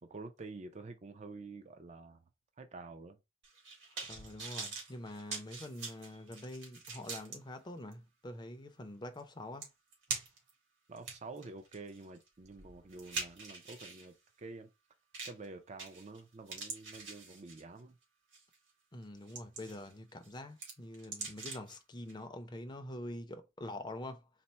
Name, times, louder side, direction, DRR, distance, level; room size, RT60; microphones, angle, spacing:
voice 1, 0.0-2.2 2.6-3.2 10.9-14.7 15.2-18.0, right 3 dB, 35° right, 0.4 m, -48 dB
sound 1, 3.4-7.4 7.9-8.0 9.2-9.3 9.6-10.5 11.0-14.1 15.1-15.5 15.8-16.2 16.5-17.8 18.3-18.5 19.0-19.9 20.2-21.8 22.1-22.2, right 4 dB, 60° right, 1.7 m, -43 dB
voice 2, 4.1-9.7 18.9-24.3, left 1 dB, 20° left, 0.5 m, -45 dB
4.1 x 2.0 x 4.3 m
head